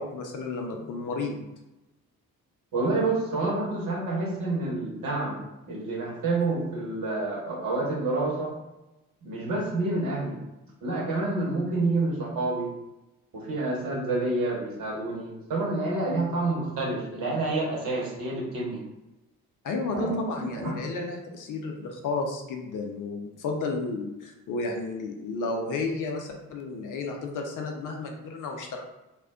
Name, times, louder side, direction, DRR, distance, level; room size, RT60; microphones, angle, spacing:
voice 1, 0.0-1.5 19.6-28.8, left 3 dB, 45° left, 2 dB, 0.6 m, -32 dB
voice 2, 2.7-5.4 5.7-8.5 9.2-10.4 10.8-12.7 13.3-18.8 19.9-20.2 20.5-20.8, right 2 dB, 50° right, -3 dB, 1.1 m, -28 dB
2.4 x 2.2 x 3.6 m, 0.99 s
figure-of-eight pair, 40°, 42 cm